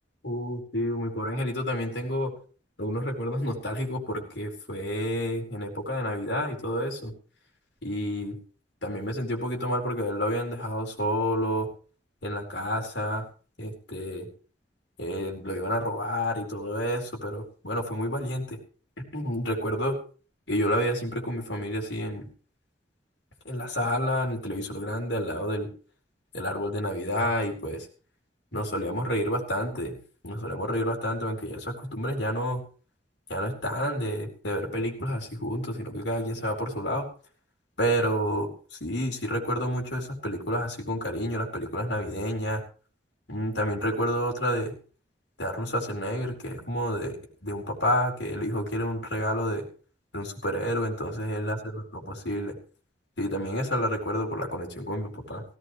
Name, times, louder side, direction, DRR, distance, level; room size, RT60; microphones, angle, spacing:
voice 1, 0.2-2.3 2.8-7.1 7.8-8.4 8.8-11.7 12.2-13.2 13.6-14.3 15.0-18.6 19.0-20.0 20.5-22.3 23.4-25.7 26.3-27.9 28.5-30.0 30.2-32.6 33.3-37.1 37.8-42.6 43.3-44.7 45.4-47.2 47.4-49.6 50.1-51.6 52.1-52.5 53.2-55.4, equal, 75° left, 1 dB, 4.5 m, -29 dB
17.5 x 17.0 x 3.2 m, 0.38 s
head